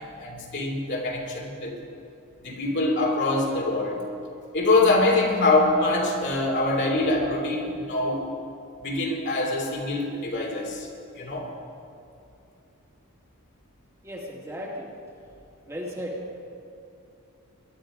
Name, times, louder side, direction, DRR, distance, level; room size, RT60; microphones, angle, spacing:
voice 1, 0.0-1.7 2.4-4.1 4.5-8.3 8.8-10.9 11.1-11.5, left 2 dB, 55° left, -1 dB, 3.1 m, -24 dB
voice 2, 14.0-14.9 15.7-16.2, equal, 15° right, -3 dB, 2.5 m, -35 dB
21.5 x 11.5 x 5.1 m, 2.7 s
head